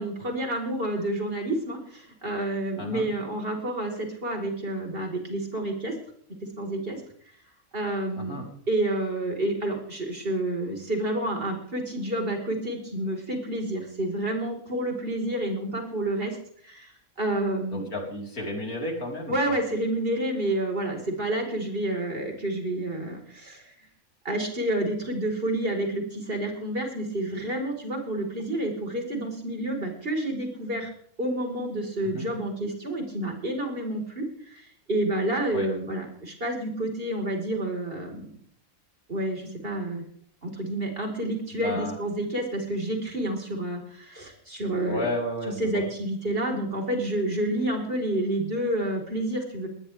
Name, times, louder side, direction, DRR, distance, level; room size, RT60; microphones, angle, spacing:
voice 1, 0.0-5.9 6.4-7.0 7.7-8.4 8.7-16.4 16.6-17.9 19.3-23.7 24.2-30.9 31.2-38.3 39.1-40.0 40.4-45.1 45.6-49.7, right 1 dB, 40° right, 2 dB, 4.8 m, -29 dB
voice 2, 17.7-19.5 32.0-32.3 35.5-35.7 41.5-42.0 44.9-45.9, left 1 dB, 80° left, 0 dB, 4.8 m, -33 dB
21.0 x 19.5 x 3.5 m, 0.63 s
omnidirectional pair, 1.5 m